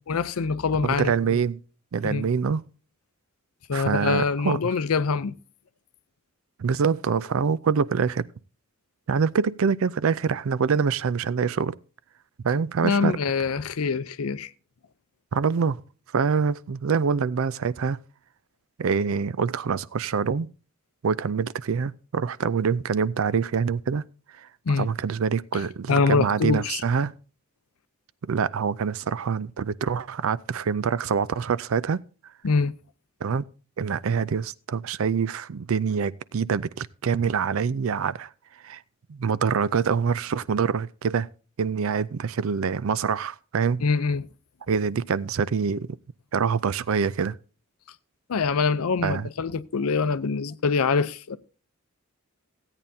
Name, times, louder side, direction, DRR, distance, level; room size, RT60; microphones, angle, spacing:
voice 1, 0.1-1.4 2.0-2.3 3.7-5.3 12.8-14.5 24.7-24.9 25.9-26.8 32.4-32.7 43.8-44.3 48.3-51.4, left 4 dB, 85° left, 0.6 m, -24 dB
voice 2, 0.8-1.6 1.9-2.6 3.7-4.6 6.6-8.3 9.1-11.8 12.4-13.2 15.3-15.8 16.1-18.0 18.8-20.5 21.0-24.0 24.8-27.1 28.2-32.0 33.2-33.4 33.8-38.3 38.6-38.8 39.1-41.3 41.6-43.8 44.7-46.0 46.3-47.4 49.0-49.3, right 6 dB, 65° right, 0.4 m, -25 dB
16.0 x 8.9 x 2.7 m
head